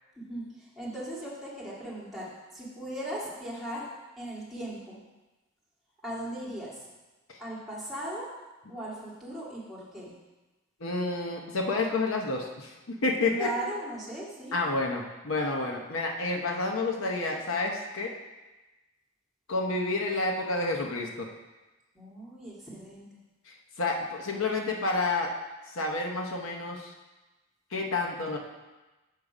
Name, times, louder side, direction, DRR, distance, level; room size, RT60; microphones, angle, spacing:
voice 1, 0.2-5.0 6.0-6.9 7.4-8.4 8.7-10.2 13.3-14.6 21.9-23.1, right 1 dB, ahead, -6 dB, 1.9 m, -38 dB
voice 2, 10.8-13.5 14.5-18.1 19.5-21.3 23.8-25.3 25.7-26.9 27.7-28.4, left 3 dB, 80° left, 1 dB, 0.8 m, -29 dB
6.5 x 5.4 x 4.9 m, 1.1 s
head